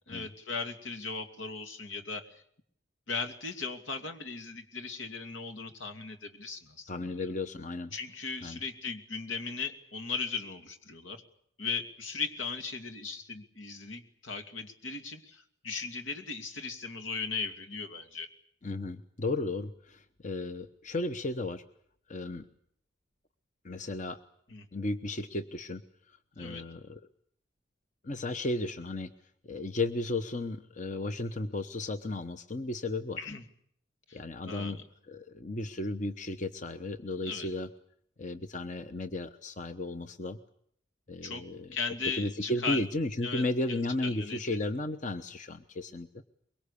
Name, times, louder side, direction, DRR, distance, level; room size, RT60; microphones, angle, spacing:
voice 1, 0.1-2.4 3.1-7.1 7.9-11.2 11.6-18.3 24.5-24.7 26.4-26.6 33.2-33.4 34.1-34.8 37.2-37.5 41.2-41.5 41.7-42.8 43.2-44.4, left 4 dB, 85° left, 7 dB, 2.7 m, -37 dB
voice 2, 6.9-7.9 8.4-8.6 18.6-21.6 22.1-22.5 23.6-24.2 24.7-25.8 26.1-27.0 28.0-29.1 29.4-33.2 34.1-34.8 35.1-37.7 38.2-40.4 41.1-41.8 42.1-46.1, left 2 dB, 40° left, 10 dB, 1.0 m, -34 dB
24.0 x 23.0 x 8.4 m, 0.67 s
head